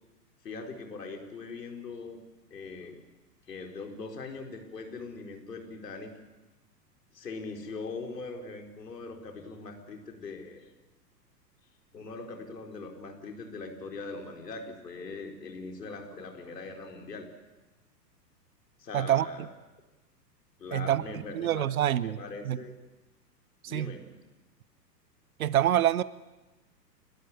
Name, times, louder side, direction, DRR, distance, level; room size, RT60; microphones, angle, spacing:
voice 1, 0.4-2.2 2.5-3.0 3.5-6.1 7.1-10.7 11.9-17.3 18.8-19.5 20.6-21.7 22.0-22.8 23.7-24.1, left 3 dB, 70° left, 3 dB, 4.5 m, -41 dB
voice 2, 18.9-19.3 20.7-21.0 21.3-22.2 22.4-22.6 23.6-24.0 25.4-26.0, right 12 dB, 55° right, 20 dB, 0.9 m, -26 dB
29.5 x 13.0 x 9.7 m, 1.1 s
figure-of-eight pair, 110°, 50 cm